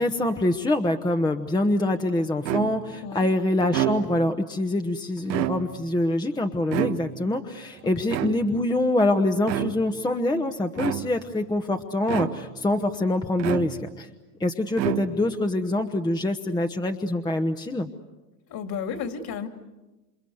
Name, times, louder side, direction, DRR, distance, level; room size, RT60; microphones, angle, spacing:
voice 1, 0.0-14.1 14.4-17.9, left 1 dB, 10° left, 6 dB, 1.1 m, -25 dB
sound 1, 2.4-3.0 3.6-4.4 5.2-5.9 6.7-7.4 8.1-8.7 9.4-10.0 10.7-11.3 12.1-12.7 13.4-14.1 14.7-15.4, right 12 dB, 90° right, 1.6 m, -29 dB
voice 2, 18.5-19.5, left 6 dB, 45° left, 7 dB, 3.1 m, -32 dB
28.5 x 26.5 x 8.0 m, 1.1 s
supercardioid pair, 110°, 49 cm